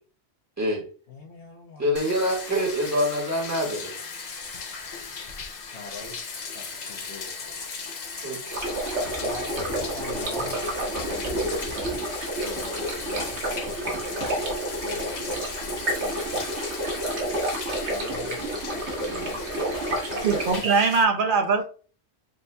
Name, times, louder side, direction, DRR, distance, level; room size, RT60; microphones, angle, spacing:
voice 1, 1.1-1.9 5.7-7.7 9.2-11.8 12.4-16.2 17.8-19.3 20.1-20.7, left 3 dB, 85° left, 1.2 m, -42 dB
voice 2, 1.8-3.9 8.2-8.6 19.0-19.4, equal, 15° right, 1.5 m, -26 dB
Bathtub (filling or washing), 2.0-21.0, left 5 dB, 50° left, 0.6 m, -37 dB
sound 1, 8.5-20.6, right 1 dB, 85° right, 1.4 m, -30 dB
voice 3, 20.2-21.6, right 4 dB, 55° right, 0.8 m, -21 dB
7.6 x 2.6 x 2.2 m
omnidirectional pair, 1.1 m